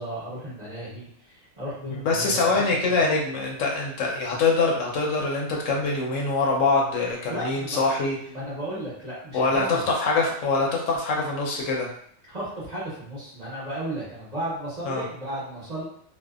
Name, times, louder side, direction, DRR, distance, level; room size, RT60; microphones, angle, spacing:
voice 1, 0.0-3.0 7.3-7.9 8.3-9.8 12.3-15.8, right 1 dB, 35° right, -9 dB, 1.0 m, -34 dB
voice 2, 1.9-8.2 9.3-11.9 14.8-15.0, left 3 dB, 75° left, -1 dB, 0.9 m, -24 dB
2.6 x 2.2 x 2.3 m, 0.67 s
omnidirectional pair, 1.4 m